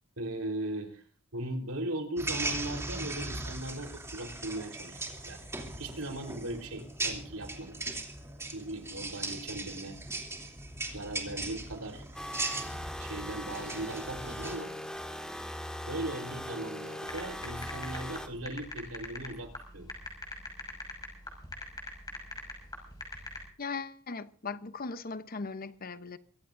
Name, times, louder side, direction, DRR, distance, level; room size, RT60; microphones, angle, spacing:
voice 1, 0.2-1.0 1.3-5.4 5.8-7.8 8.5-10.0 10.9-12.0 13.0-14.7 15.9-19.9, right 1 dB, 80° right, 4.1 m, -38 dB
sound 1, 2.2-14.6, right 2 dB, 15° right, 3.0 m, -39 dB
sound 2, 12.1-18.3, equal, 5° left, 2.1 m, -40 dB
sound 3, 17.1-23.4, left 2 dB, 20° left, 6.2 m, -42 dB
voice 2, 23.6-26.2, left 4 dB, 45° left, 0.9 m, -38 dB
24.0 x 17.0 x 2.7 m
head